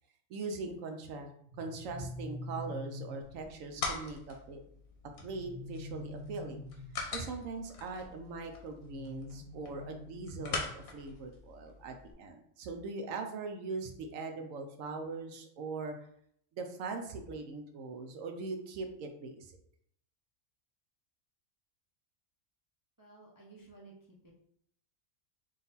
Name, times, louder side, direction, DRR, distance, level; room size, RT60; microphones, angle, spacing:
voice 1, 0.3-1.3 1.6-4.6 5.2-6.6 7.1-16.1 16.5-19.6, right 3 dB, 75° right, 5 dB, 1.0 m, -41 dB
sound 1, 1.5-3.4 5.2-7.1 8.9-10.8, left 1 dB, 55° right, 0.9 m, -45 dB
sound 2, 3.2-12.1, left 4 dB, 85° left, 1.2 m, -43 dB
voice 2, 23.0-24.3, right 3 dB, 25° right, -3 dB, 0.4 m, -55 dB
3.9 x 2.6 x 4.0 m, 0.67 s
omnidirectional pair, 1.5 m